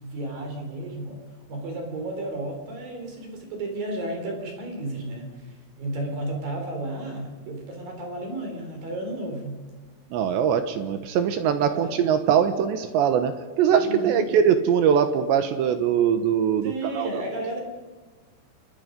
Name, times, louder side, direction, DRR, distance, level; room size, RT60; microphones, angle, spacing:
voice 1, 0.0-1.2 1.5-9.6 11.7-11.9 13.8-14.3 16.6-17.6, right 1 dB, 45° right, 3 dB, 5.3 m, -33 dB
voice 2, 10.1-17.2, right 8 dB, 70° right, 9 dB, 2.9 m, -22 dB
28.0 x 21.0 x 5.3 m, 1.4 s
omnidirectional pair, 6.0 m